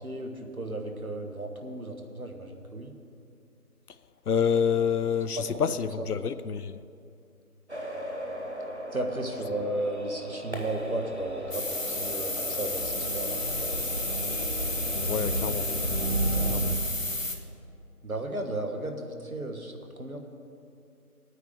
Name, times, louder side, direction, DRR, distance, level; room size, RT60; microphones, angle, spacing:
voice 1, 0.0-2.9 5.4-5.5 6.0-6.1 8.9-13.9 18.0-20.2, right 1 dB, 65° right, 4 dB, 1.3 m, -34 dB
voice 2, 4.3-6.8 15.0-15.7 16.5-16.8, left 7 dB, 75° left, 14 dB, 0.6 m, -27 dB
sound 1, 7.7-16.8, right 1 dB, 45° right, 0.9 m, -33 dB
sound 2, 11.5-17.4, left 2 dB, 55° left, 0.9 m, -32 dB
15.5 x 9.3 x 3.5 m, 2.5 s
figure-of-eight pair, 180°, 46 cm